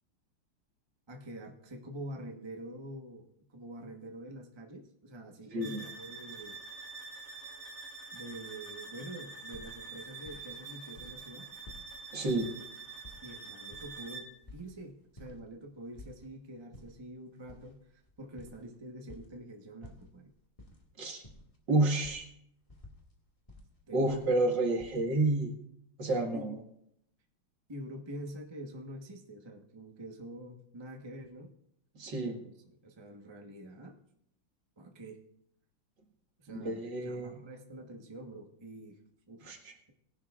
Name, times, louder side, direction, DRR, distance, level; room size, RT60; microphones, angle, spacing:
voice 1, 1.1-6.6 8.1-11.5 13.2-17.8 18.2-20.3 23.9-24.3 26.3-26.5 27.7-31.5 32.2-32.5 32.8-34.0 34.8-35.2 36.4-39.0 39.3-39.5, right 1 dB, 20° right, 1 dB, 0.8 m, -46 dB
sound 1, 5.6-14.4, right 4 dB, 40° right, 1.9 m, -46 dB
sound 2, 9.5-10.7 10.9-11.2 11.5-11.9 12.3-12.5 12.9-14.7 15.1-15.4 15.7-16.2 16.6-16.9 17.4-19.3 19.8-20.8 21.1-21.6 22.0-22.2 22.7-23.6 24.0-25.0, left 1 dB, 15° left, 1.7 m, -52 dB
voice 2, 12.1-12.5 21.0-21.2 21.7-22.3 23.9-25.5 26.0-26.6 32.0-32.4 36.5-37.3 39.4-39.7, right 2 dB, 60° right, 2 dB, 2.3 m, -30 dB
19.5 x 11.0 x 2.4 m, 0.74 s
omnidirectional pair, 2.3 m